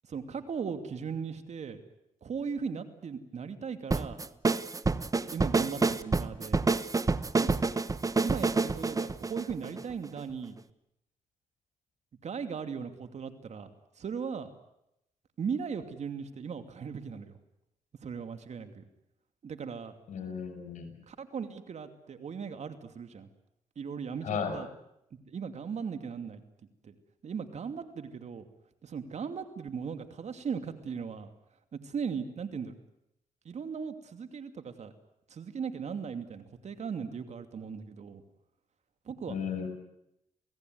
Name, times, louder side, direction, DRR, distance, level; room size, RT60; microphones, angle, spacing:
voice 1, 0.1-1.8 2.2-4.2 5.2-6.6 7.4-7.5 8.2-10.6 12.2-13.7 14.0-14.5 15.4-17.3 18.0-18.8 19.4-19.9 21.1-23.3 23.8-24.7 25.3-26.4 26.8-26.9 27.2-28.4 28.8-31.3 31.8-32.7 33.4-34.9 35.3-38.2 39.1-39.4, right 6 dB, 60° right, 9 dB, 2.7 m, -38 dB
sound 1, 3.9-10.2, right 3 dB, 25° right, 1.1 m, -28 dB
voice 2, 20.1-21.0 24.2-24.6 39.3-39.7, left 6 dB, 70° left, 6 dB, 7.0 m, -34 dB
28.0 x 18.0 x 9.5 m, 0.84 s
cardioid pair, 70°, 13 cm